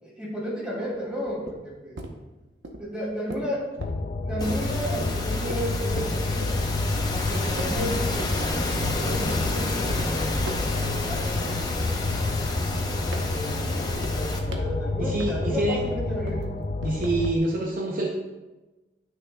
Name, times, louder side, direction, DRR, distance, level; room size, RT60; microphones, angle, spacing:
voice 1, 0.0-2.0 2.8-3.7 4.2-6.5 7.3-11.9 12.8-16.5, equal, 5° right, -6 dB, 2.4 m, -33 dB
sound 1, 0.9-7.2 7.6-8.4 8.7-9.4 9.9-10.1 10.4-11.2 11.5-15.6 15.8-17.4, right 1 dB, 85° right, 0.9 m, -40 dB
sound 2, 3.8-17.3, left 3 dB, 45° left, 0.4 m, -29 dB
sound 3, 4.4-14.4, left 2 dB, 20° left, 0.7 m, -30 dB
voice 2, 15.0-15.8 16.8-18.1, right 2 dB, 50° right, 0 dB, 0.7 m, -26 dB
10.5 x 6.2 x 2.3 m, 1.1 s
head